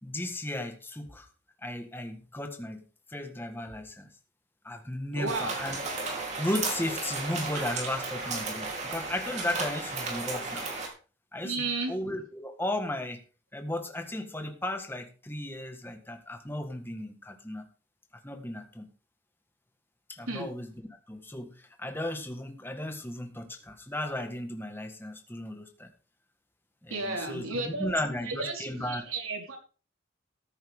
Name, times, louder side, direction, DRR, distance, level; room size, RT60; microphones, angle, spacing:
voice 1, 0.0-1.3 1.6-2.8 3.1-4.1 4.6-5.8 6.4-10.7 11.3-13.2 13.5-17.6 18.2-18.8 20.1-20.7 21.1-25.9 26.8-29.0, left 1 dB, 10° left, 5 dB, 1.6 m, -35 dB
voice 2, 5.1-5.6 11.4-11.9 20.3-20.5 26.9-27.9 28.2-29.6, right 3 dB, 85° right, 1 dB, 4.4 m, -33 dB
sound 1, 5.3-10.9, right 3 dB, 35° right, 3.5 m, -34 dB
14.0 x 10.0 x 3.7 m, 0.36 s
head